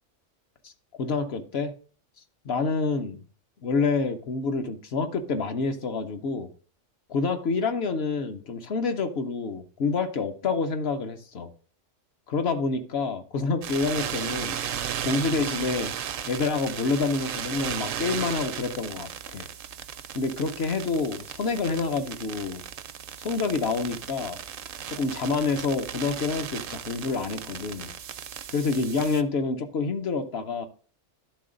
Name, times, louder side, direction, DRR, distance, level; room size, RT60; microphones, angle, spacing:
voice 1, 1.0-1.7 2.4-3.2 3.6-6.5 7.1-11.5 12.3-14.6 15.0-15.9 16.3-19.5 20.1-22.6 23.2-24.4 24.9-27.9 28.5-30.7, left 4 dB, 60° left, 7 dB, 0.9 m, -27 dB
sound 1, 13.6-29.2, right 9 dB, 60° right, 0.6 m, -36 dB
11.5 x 3.8 x 3.7 m, 0.39 s
omnidirectional pair, 1.2 m